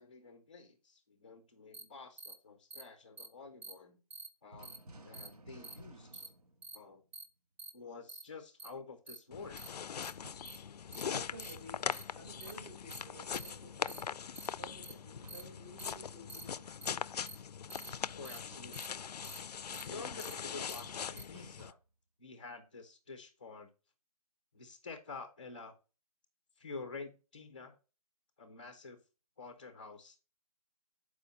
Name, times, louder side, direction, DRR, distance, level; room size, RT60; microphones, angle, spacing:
voice 1, 0.0-4.0 4.4-4.7 5.0-6.2 6.7-7.0 7.7-9.7 18.1-19.0 19.8-21.8 22.2-23.7 24.5-25.8 26.6-27.8 28.4-29.0 29.4-30.2, left 4 dB, 15° left, 0.5 m, -49 dB
sound 1, 1.7-1.8 2.2-2.3 2.7-2.8 3.2-3.3 3.6-3.7 4.1-4.3 4.6-4.8 5.1-5.3 5.6-5.7 6.1-6.3 6.6-6.8 7.1-7.2 7.6-7.7 8.1-8.2 8.6-8.7 9.1-9.2 9.6-9.7 10.0-10.1 10.5-10.6 10.9-11.0 11.4-11.5 11.9-12.0 12.4-12.5 12.9-13.0 13.3-13.5 13.9-14.0 14.4-14.5 14.8-14.9 15.3-15.4 15.8-15.9 16.3-16.4 16.8-16.9 17.3-17.4 17.7-17.9 18.3-18.4 18.7-18.9 19.2-19.4 19.7-19.8 20.2-20.3 20.7-20.8 21.2-21.3, right 3 dB, 50° right, 1.0 m, -47 dB
sound 2, 4.5-7.3 10.2-10.6 12.6-13.2 15.2-15.5 15.8-16.1 17.9-18.8 20.6-21.9, right 1 dB, 75° right, 1.4 m, -56 dB
sound 3, 9.3-21.7, left 7 dB, 90° left, 0.4 m, -41 dB
voice 2, 11.0-14.0 14.6-16.7, right 2 dB, 15° right, 0.8 m, -53 dB
7.0 x 4.8 x 3.9 m
hypercardioid pair, 175°, 20 cm